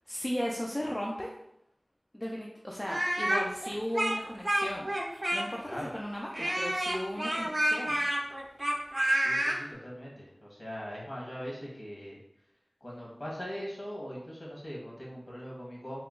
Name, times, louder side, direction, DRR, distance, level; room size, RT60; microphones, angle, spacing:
voice 1, 0.1-1.3 2.1-4.9 5.3-8.0, equal, 25° left, -3 dB, 0.4 m, -36 dB
Speech, 2.8-5.7 6.3-9.6, right 1 dB, 40° right, 0.5 m, -29 dB
voice 2, 9.1-12.2 12.8-16.0, equal, 55° left, -5 dB, 1.3 m, -41 dB
2.9 x 2.2 x 3.6 m, 0.80 s
wide cardioid pair, 45°, 0 cm